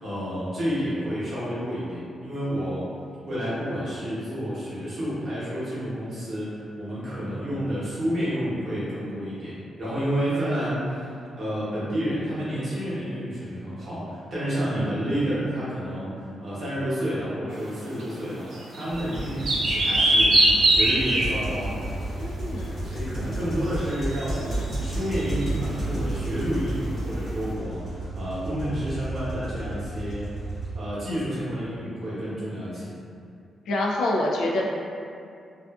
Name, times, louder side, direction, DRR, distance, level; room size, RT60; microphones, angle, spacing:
voice 1, 0.0-2.9 3.2-11.1 11.4-20.4 20.7-21.8 22.8-30.3 30.7-32.9, equal, 40° right, -10 dB, 0.9 m, -30 dB
sound 1, 18.0-18.1 18.5-21.5 23.9-25.5, right 1 dB, 65° right, 0.5 m, -22 dB
sound 2, 18.9-30.8, right 2 dB, 35° left, 0.8 m, -32 dB
voice 2, 22.2-22.8 33.7-34.7, left 1 dB, 80° left, -2 dB, 0.3 m, -26 dB
2.4 x 2.4 x 2.3 m, 2.4 s
wide cardioid pair, 165°, 0 cm